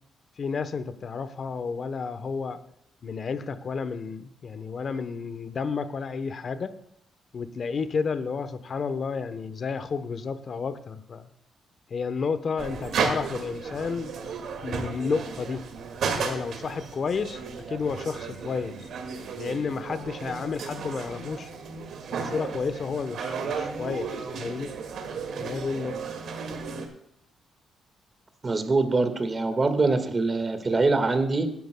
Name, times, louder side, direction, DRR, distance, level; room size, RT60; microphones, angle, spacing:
voice 1, 0.4-2.6 3.0-6.7 7.3-11.3 11.9-14.1 14.6-15.7 16.1-17.4 17.7-18.8 19.4-21.5 22.1-24.7 25.4-26.0, left 5 dB, 50° left, 12 dB, 0.9 m, -31 dB
sound 1, 12.6-26.9, right 5 dB, 75° right, 2.0 m, -34 dB
voice 2, 28.4-31.5, right 3 dB, 30° right, 8 dB, 1.7 m, -24 dB
17.0 x 10.5 x 2.2 m, 0.73 s
cardioid pair, 90°, 0 cm